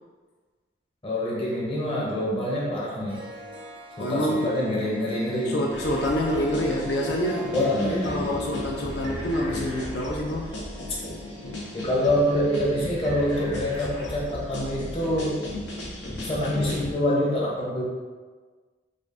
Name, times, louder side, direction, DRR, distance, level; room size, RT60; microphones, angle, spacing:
voice 1, 1.0-3.2 4.0-5.7 7.5-8.3 11.7-15.4 16.1-17.8, left 1 dB, 30° left, -5 dB, 0.9 m, -26 dB
Harp, 2.8-2.9 3.1-12.6, left 2 dB, 30° right, 0.5 m, -43 dB
voice 2, 4.0-4.5 5.5-10.5, equal, 65° left, -2 dB, 0.4 m, -27 dB
sound 1, 5.7-16.9, left 1 dB, 80° left, 1.0 m, -36 dB
5.0 x 2.5 x 2.5 m, 1.4 s
head